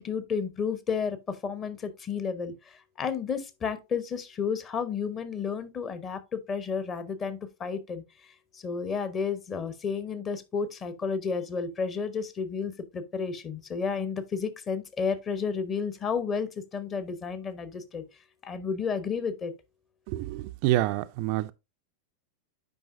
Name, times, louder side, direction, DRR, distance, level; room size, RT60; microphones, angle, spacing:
voice 1, 0.0-8.0 8.5-18.0 18.4-19.5, left 6 dB, 25° left, 0.9 m, -32 dB
voice 2, 20.1-21.5, right 15 dB, 45° right, 0.4 m, -27 dB
9.1 x 5.1 x 2.5 m
figure-of-eight pair, 90°, 0 cm